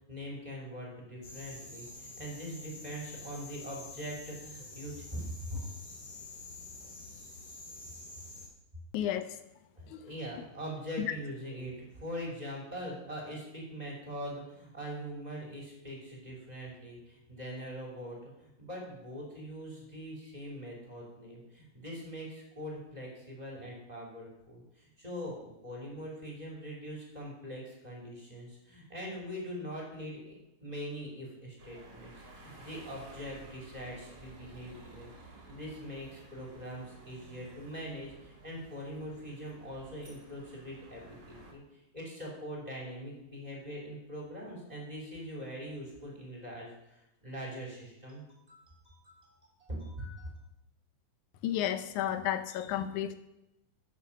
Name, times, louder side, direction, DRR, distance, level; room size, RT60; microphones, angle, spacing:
voice 1, 0.1-5.6 9.8-35.1 35.5-49.3 49.6-50.3, equal, 15° right, -3 dB, 3.0 m, -42 dB
sound 1, 1.2-8.5, left 3 dB, 45° left, 3.1 m, -48 dB
voice 2, 8.9-9.3 9.9-10.0 11.0-11.1 51.4-53.2, left 11 dB, 90° left, 10 dB, 2.3 m, -32 dB
sound 2, 31.6-41.5, right 2 dB, 40° right, 2.5 m, -54 dB
11.0 x 6.3 x 7.3 m, 0.90 s
omnidirectional pair, 3.4 m